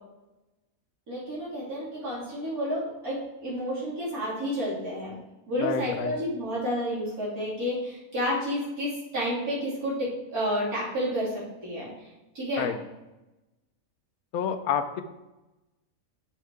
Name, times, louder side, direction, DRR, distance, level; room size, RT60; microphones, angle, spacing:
voice 1, 1.1-5.2 5.5-12.1 12.3-12.7, equal, 85° right, -7 dB, 3.3 m, -30 dB
voice 2, 5.6-6.1 12.6-12.7 14.3-15.0, left 7 dB, 80° left, 9 dB, 1.1 m, -28 dB
6.7 x 4.5 x 4.7 m, 1.0 s
omnidirectional pair, 1.5 m